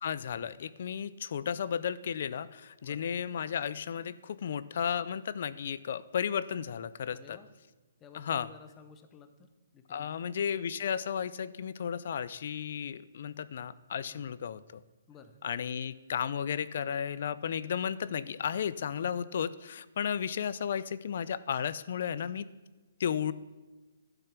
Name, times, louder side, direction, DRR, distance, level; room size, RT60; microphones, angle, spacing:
voice 1, 0.0-7.4 8.1-8.5 9.9-14.8 15.4-22.5 23.0-23.3, left 8 dB, 50° left, 18 dB, 0.4 m, -34 dB
voice 2, 7.1-7.5 8.0-10.1 14.1-14.3 15.1-15.4, left 6 dB, 15° left, 9 dB, 0.7 m, -54 dB
12.0 x 6.8 x 6.0 m, 1.2 s
hypercardioid pair, 170°, 0 cm